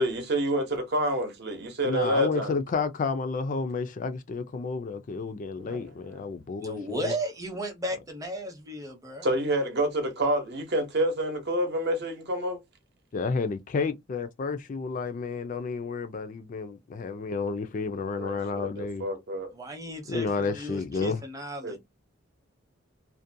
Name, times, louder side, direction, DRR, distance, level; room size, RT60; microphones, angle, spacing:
voice 1, 0.0-2.5 5.7-6.2 9.2-12.6 18.2-19.5 21.6-21.8, right 1 dB, 55° right, 0.8 m, -28 dB
voice 2, 1.8-7.1 13.1-19.0 20.1-21.2, left 4 dB, 40° left, 0.3 m, -31 dB
voice 3, 6.6-9.3 19.5-21.8, right 1 dB, 15° right, 0.7 m, -35 dB
2.5 x 2.1 x 2.6 m
head